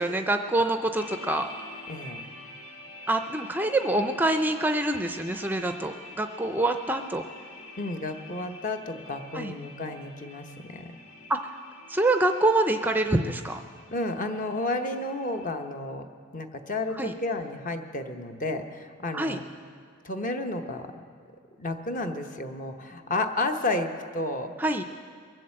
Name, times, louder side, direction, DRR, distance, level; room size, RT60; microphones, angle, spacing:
voice 1, 0.0-1.5 3.1-7.2 9.3-9.5 11.3-11.6 11.9-13.6 17.0-17.1 19.1-19.4 24.6-24.8, right 2 dB, 10° right, 7 dB, 0.4 m, -26 dB
sound 1, 1.0-15.5, left 2 dB, 80° left, 1.4 m, -47 dB
voice 2, 1.9-2.2 7.8-11.0 13.9-16.1 16.3-19.4 20.0-20.9 21.6-24.5, left 2 dB, 40° left, 6 dB, 0.9 m, -31 dB
22.5 x 7.7 x 7.7 m, 2.1 s
head